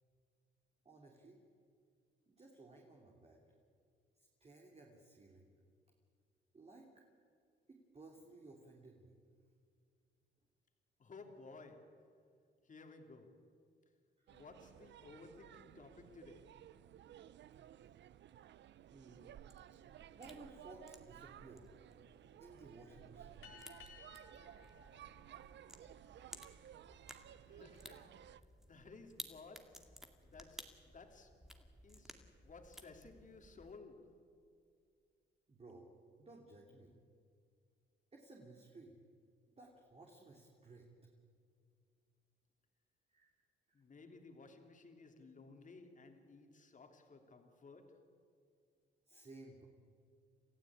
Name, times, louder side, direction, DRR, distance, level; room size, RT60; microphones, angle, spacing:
voice 1, 0.8-1.4 2.3-3.4 4.4-5.5 6.5-7.0 7.7-9.2 14.2-14.4 18.9-19.4 20.1-21.7 22.4-23.4 26.9-27.2 35.5-35.9 36.2-37.0 38.1-39.0 39.6-40.9 43.1-43.3 43.7-43.8 49.1-49.7, right 2 dB, 30° right, 0 dB, 3.3 m, -58 dB
voice 2, 11.0-12.1 12.6-13.3 14.3-16.6 27.5-31.4 31.8-34.1 43.7-48.0, left 3 dB, 40° left, 4 dB, 3.2 m, -57 dB
sound 1, 14.3-28.4, right 11 dB, 65° right, 0.7 m, -57 dB
sound 2, 19.1-33.8, equal, ahead, 2.2 m, -58 dB
sound 3, 23.4-26.4, left 5 dB, 90° left, 3.6 m, -60 dB
28.0 x 15.0 x 8.9 m, 2.3 s
cardioid pair, 90°, 20 cm